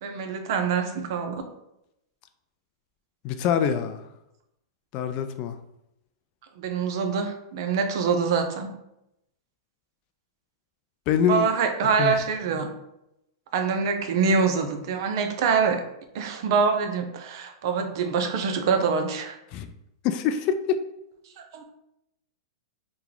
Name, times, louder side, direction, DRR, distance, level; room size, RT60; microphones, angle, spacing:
voice 1, 0.0-1.4 6.6-8.7 11.2-12.7 13.5-15.8 16.1-19.4 21.4-21.6, right 5 dB, 60° right, 5 dB, 0.5 m, -25 dB
voice 2, 3.2-4.0 4.9-5.6 11.1-11.5 12.0-12.1 19.5-19.7 20.0-20.8, left 7 dB, 40° left, 8 dB, 0.3 m, -24 dB
2.9 x 2.2 x 3.8 m, 0.84 s
hypercardioid pair, 140°, 2 cm